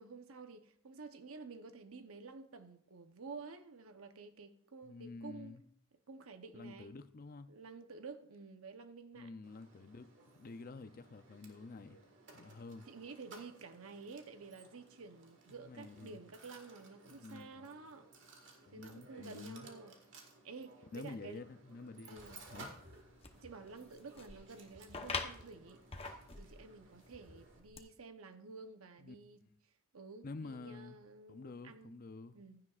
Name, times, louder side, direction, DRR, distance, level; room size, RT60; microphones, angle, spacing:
voice 1, 0.0-5.6 6.1-6.9 7.5-9.3 12.9-18.1 18.7-21.5 22.1-22.4 23.3-25.8 26.4-29.4 29.9-31.9 32.3-32.6, right 4 dB, 80° right, 0.9 m, -51 dB
voice 2, 4.8-5.6 6.5-7.5 9.1-12.0 12.3-12.9 15.6-16.2 17.1-17.7 18.7-19.7 20.9-22.7 29.0-29.2 30.2-31.0 31.3-32.4, left 3 dB, 45° left, 0.5 m, -49 dB
Mechanisms, 9.4-27.6, right 3 dB, 60° right, 1.7 m, -59 dB
sound 1, 22.2-27.8, left 4 dB, 25° left, 0.8 m, -47 dB
15.5 x 11.0 x 2.4 m
head